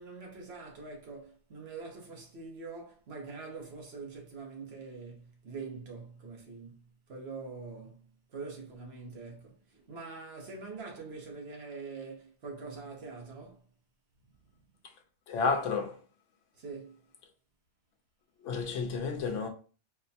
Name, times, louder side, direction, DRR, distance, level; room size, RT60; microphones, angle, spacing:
voice 1, 0.0-13.6 16.6-17.0, right 4 dB, 60° right, 1.1 m, -44 dB
voice 2, 15.3-16.0 18.4-19.5, left 4 dB, 80° left, 0.9 m, -31 dB
4.2 x 2.1 x 2.7 m
omnidirectional pair, 1.2 m